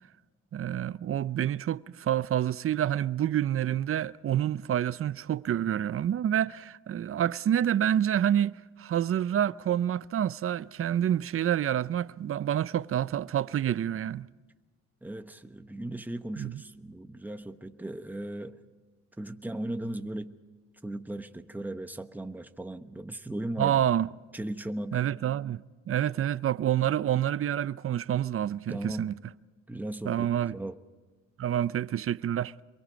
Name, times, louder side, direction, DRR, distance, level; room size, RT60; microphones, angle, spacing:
voice 1, 0.5-14.3 16.4-16.6 23.6-24.1 24.9-29.2 30.0-30.6 31.4-32.5, right 10 dB, 45° right, 0.6 m, -28 dB
voice 2, 15.0-18.6 19.2-20.3 20.8-23.9 24.3-25.0 28.7-29.1 29.7-30.8, right 1 dB, 5° right, 1.2 m, -37 dB
27.0 x 23.0 x 5.2 m
cardioid pair, 90°, 30 cm